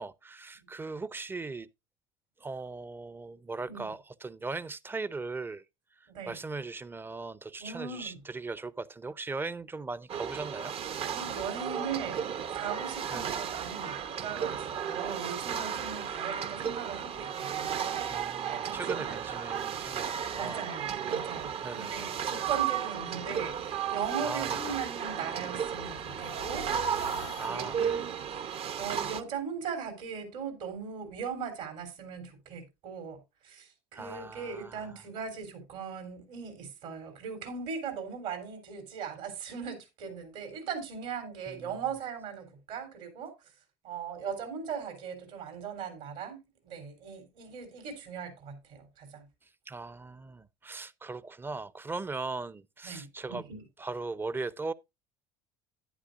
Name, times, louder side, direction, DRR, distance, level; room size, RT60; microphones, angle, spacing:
voice 1, 0.0-1.7 2.4-5.6 6.3-10.7 13.1-13.4 18.1-20.7 21.6-22.2 24.2-24.8 27.4-28.0 33.9-35.0 41.5-41.8 49.7-53.5 53.8-54.7, right 3 dB, 15° right, 0.5 m, -39 dB
voice 2, 6.1-6.4 7.6-8.2 11.1-14.0 14.2-19.2 20.3-26.7 27.5-28.4 28.8-33.2 33.4-43.3 43.8-49.3 52.8-53.6, right 6 dB, 70° right, 3.6 m, -39 dB
sound 1, 10.1-29.2, right 8 dB, 45° right, 0.8 m, -34 dB
sound 2, 25.4-28.3, left 10 dB, 90° left, 0.8 m, -47 dB
11.0 x 9.8 x 2.5 m
hypercardioid pair, 80°, 13 cm